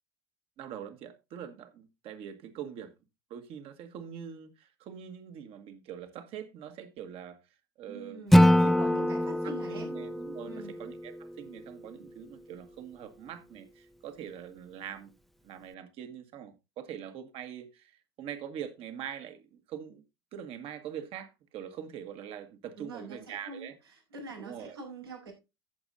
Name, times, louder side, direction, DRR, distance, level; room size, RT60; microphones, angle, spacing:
voice 1, 0.6-2.9 3.3-7.4 7.8-15.1 15.4-20.0 20.3-23.7 24.4-24.8, right 9 dB, 50° right, 1.8 m, -43 dB
voice 2, 7.9-9.9 10.5-10.7 22.8-23.7 24.1-25.3, right 2 dB, 80° right, 5.3 m, -44 dB
Acoustic guitar / Strum, 8.3-11.5, left 1 dB, ahead, 0.7 m, -24 dB
14.5 x 7.2 x 2.7 m
figure-of-eight pair, 70°, 13 cm